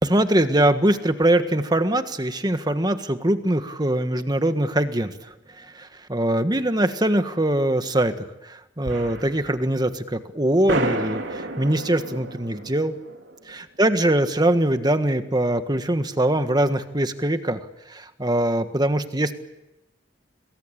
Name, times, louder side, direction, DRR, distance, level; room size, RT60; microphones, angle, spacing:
voice 1, 0.0-5.1 5.6-12.9 13.5-17.6 17.9-19.3, right 1 dB, 20° right, 9 dB, 1.5 m, -22 dB
sound 1, 8.8-9.6 9.9-10.0 10.7-13.8, right 2 dB, 80° right, 3.3 m, -30 dB
27.0 x 21.0 x 8.8 m, 0.93 s
head